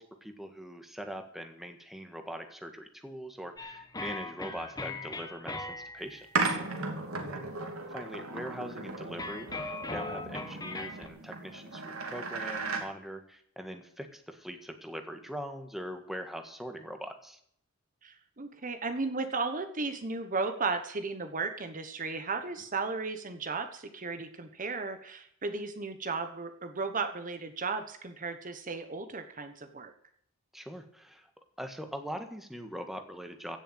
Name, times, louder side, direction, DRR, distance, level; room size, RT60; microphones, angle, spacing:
voice 1, 0.0-6.6 7.2-7.5 7.9-17.4 30.5-31.3 31.6-33.6, equal, ahead, 6 dB, 1.7 m, -42 dB
sound 1, 3.6-6.3 9.1-11.1, left 2 dB, 20° left, 1.5 m, -39 dB
sound 2, 6.4-12.8, right 3 dB, 85° right, 3.0 m, -36 dB
voice 2, 18.0-29.9, right 4 dB, 40° right, 8 dB, 1.1 m, -35 dB
16.5 x 7.1 x 9.1 m, 0.65 s
head